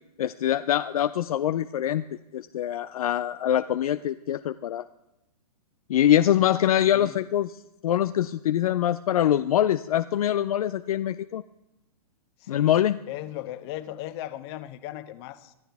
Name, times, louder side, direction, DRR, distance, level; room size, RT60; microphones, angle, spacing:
voice 1, 0.2-2.0 2.3-4.8 5.9-11.4 12.5-13.0, left 11 dB, 65° left, 0.5 m, -24 dB
voice 2, 12.4-12.7 13.1-15.5, left 14 dB, 40° left, 1.1 m, -37 dB
25.5 x 10.0 x 3.5 m
hypercardioid pair, 130°, 20 cm